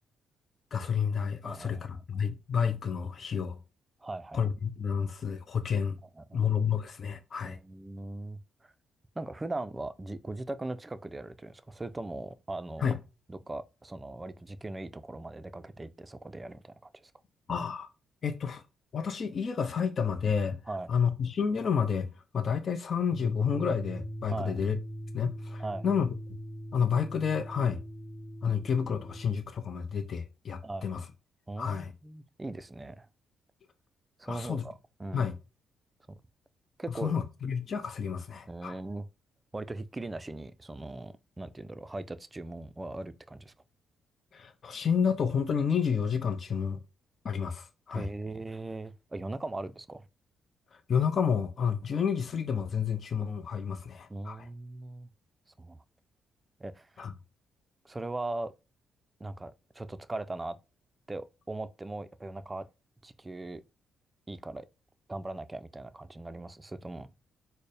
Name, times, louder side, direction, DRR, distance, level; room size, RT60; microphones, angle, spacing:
voice 1, 0.7-3.6 4.3-6.0 6.3-7.6 12.8-13.0 17.5-17.9 18.2-18.6 18.9-20.6 20.9-24.8 25.1-26.4 26.7-27.8 28.4-31.1 31.6-31.9 34.3-34.6 35.1-35.3 37.0-38.8 44.3-46.8 47.2-48.1 50.9-54.5 57.0-57.1, left 7 dB, 50° left, 0.5 m, -30 dB
voice 2, 1.4-2.2 4.0-4.5 6.1-6.4 7.4-8.7 9.2-12.9 13.3-17.1 20.7-20.9 24.3-24.6 25.6-25.9 30.6-30.9 31.5-33.1 34.2-35.3 36.1-36.2 36.8-37.1 38.5-39.1 39.5-43.5 47.9-50.0 54.1-55.1 55.6-55.8 56.6-57.0 57.8-58.5 59.2-60.6 61.1-62.7 63.0-63.6 64.3-64.7 65.1-67.1, right 2 dB, 20° right, 0.4 m, -39 dB
sound 1, 23.1-29.3, equal, 25° left, 0.9 m, -41 dB
4.2 x 2.0 x 3.3 m
supercardioid pair, 60°, 0 cm